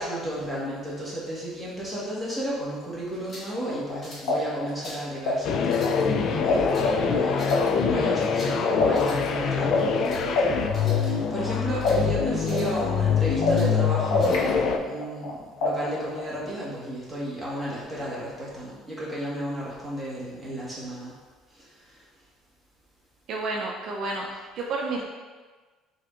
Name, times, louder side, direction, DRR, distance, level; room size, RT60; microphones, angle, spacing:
voice 1, 0.0-21.1 21.5-22.0, right 1 dB, ahead, -9 dB, 1.4 m, -33 dB
sound 1, 3.1-3.6 4.0-4.3 4.7-5.1 5.6-6.0 6.5-6.9 7.3-7.7 8.2-8.6 8.9-9.3 9.8-10.2 10.7-11.1 11.5-12.0 12.4-12.8 13.2-13.7 14.2-14.5, left 1 dB, 25° left, 1.3 m, -45 dB
sound 2, 3.6-6.5 6.8-11.5 11.8-14.4 14.6-16.3, left 4 dB, 85° left, 0.7 m, -27 dB
sound 3, 5.4-14.8, left 6 dB, 50° left, 0.3 m, -25 dB
voice 2, 23.3-25.0, right 3 dB, 50° right, -2 dB, 0.5 m, -30 dB
5.7 x 3.4 x 2.5 m, 1.3 s
cardioid pair, 145°, 0 cm